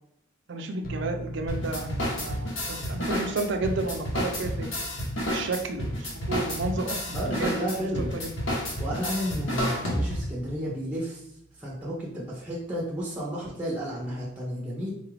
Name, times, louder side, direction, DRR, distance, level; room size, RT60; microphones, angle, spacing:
voice 1, 0.5-4.7 5.3-7.5 7.8-8.3, right 2 dB, 60° right, 5 dB, 0.4 m, -32 dB
sound 1, 0.8-14.3, right 2 dB, 45° left, 0.5 m, -46 dB
sound 2, 1.5-10.4, equal, 70° left, 1.0 m, -30 dB
voice 2, 7.1-8.1 8.8-11.3 11.6-14.9, equal, 5° right, -5 dB, 0.6 m, -32 dB
3.8 x 2.4 x 3.1 m, 0.76 s
head